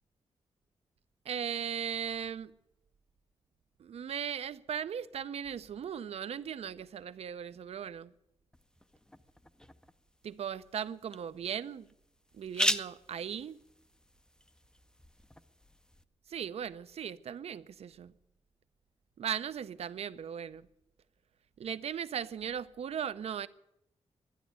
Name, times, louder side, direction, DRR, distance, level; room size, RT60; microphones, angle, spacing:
voice 1, 1.3-2.5 3.8-8.1 10.2-11.9 12.3-13.6 16.3-18.1 19.2-20.7 21.6-23.5, right 8 dB, 65° right, 0.6 m, -38 dB
sound 1, 8.5-16.0, left 1 dB, 5° left, 0.5 m, -39 dB
12.0 x 10.5 x 9.5 m
wide cardioid pair, 145°, 11 cm